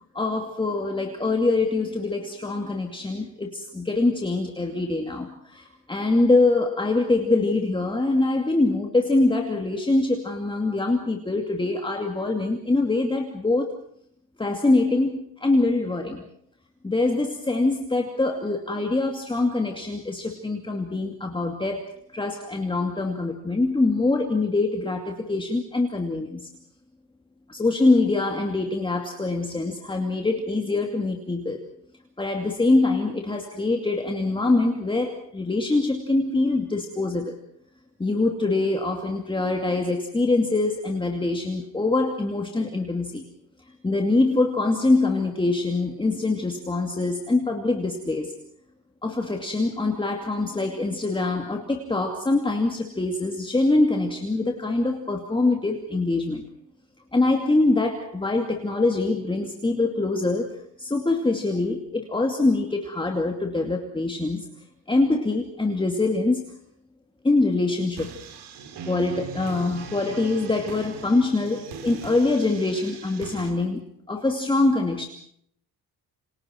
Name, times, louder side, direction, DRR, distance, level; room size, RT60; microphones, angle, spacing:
voice 1, 0.1-13.8 14.4-16.3 16.8-26.5 27.5-31.7 32.2-37.4 38.0-43.2 43.8-48.3 49.0-56.5 57.1-60.5 60.8-64.5 64.9-66.5 67.2-68.1 68.9-75.1, left 2 dB, 15° left, 2 dB, 2.5 m, -24 dB
sound 1, 67.9-73.5, right 5 dB, 85° right, 3.8 m, -40 dB
29.0 x 26.5 x 4.6 m, 0.66 s
cardioid pair, 140°, 39 cm